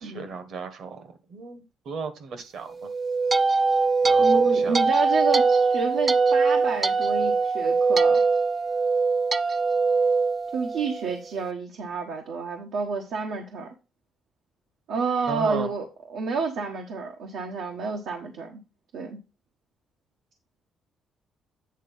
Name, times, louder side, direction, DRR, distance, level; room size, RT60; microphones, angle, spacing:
voice 1, 0.0-2.7 4.0-4.8 15.3-15.7, right 5 dB, 65° right, 1.4 m, -35 dB
sound 1, 2.8-11.1, right 4 dB, 30° right, 0.4 m, -22 dB
voice 2, 4.2-8.2 10.5-13.7 14.9-18.6 18.9-19.2, right 4 dB, 85° right, 1.2 m, -29 dB
9.1 x 3.7 x 5.4 m
cardioid pair, 90°, 0 cm